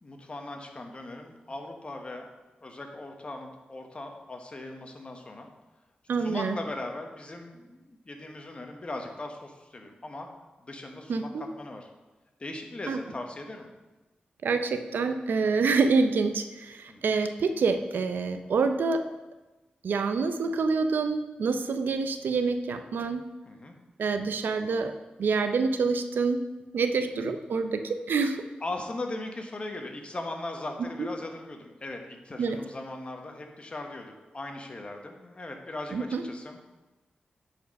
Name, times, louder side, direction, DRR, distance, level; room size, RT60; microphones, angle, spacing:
voice 1, 0.0-2.3 2.6-5.5 6.2-10.3 10.6-11.9 12.4-13.7 16.9-17.2 23.5-23.7 27.1-27.2 28.6-36.6, left 2 dB, 35° left, 3 dB, 1.1 m, -39 dB
voice 2, 6.1-6.6 11.1-11.5 12.9-13.0 14.4-19.0 19.8-23.2 24.0-24.9 25.2-26.5 26.7-28.4 30.8-31.1 32.4-32.6 35.9-36.2, right 4 dB, 85° right, 8 dB, 0.6 m, -27 dB
9.2 x 4.4 x 5.3 m, 1.1 s
wide cardioid pair, 95°, 3 cm